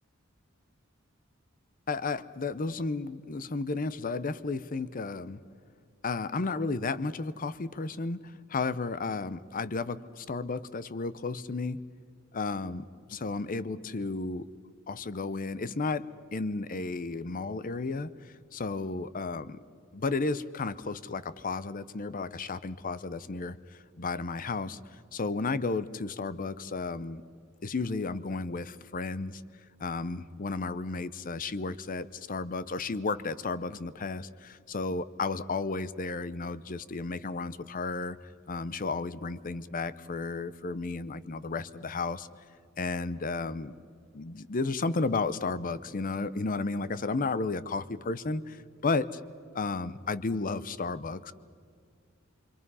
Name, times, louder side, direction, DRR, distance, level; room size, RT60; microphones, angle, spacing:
voice 1, 1.9-5.4 6.0-11.8 12.3-14.5 14.9-18.1 18.5-19.6 19.9-23.6 24.0-24.8 25.1-27.2 27.6-29.4 29.8-38.2 38.5-42.3 42.8-43.7 44.1-49.2 49.5-51.3, left 3 dB, 40° left, 16 dB, 0.7 m, -33 dB
27.0 x 25.5 x 5.5 m, 2.2 s
head